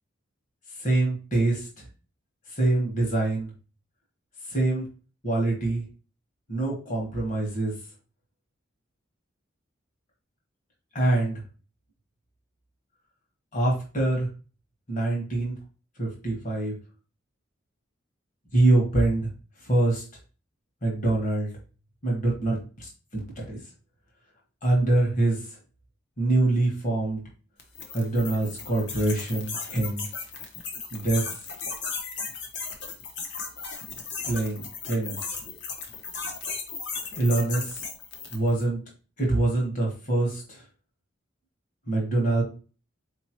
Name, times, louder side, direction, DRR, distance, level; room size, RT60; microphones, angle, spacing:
voice 1, 0.8-1.7 2.6-3.5 4.5-4.9 5.2-5.8 6.5-7.7 10.9-11.4 13.5-14.3 14.9-15.6 16.0-16.7 18.5-19.3 19.6-20.0 20.8-21.5 22.0-22.9 23.5-23.6 24.6-25.4 26.2-27.2 27.9-30.0 30.9-31.2 34.3-35.2 37.2-37.8 38.3-38.8 39.2-40.6 41.9-42.4, right 2 dB, 40° left, -2 dB, 1.4 m, -24 dB
sound 1, 27.6-38.5, left 5 dB, 60° left, 0.8 m, -36 dB
4.2 x 2.9 x 3.0 m, 0.36 s
head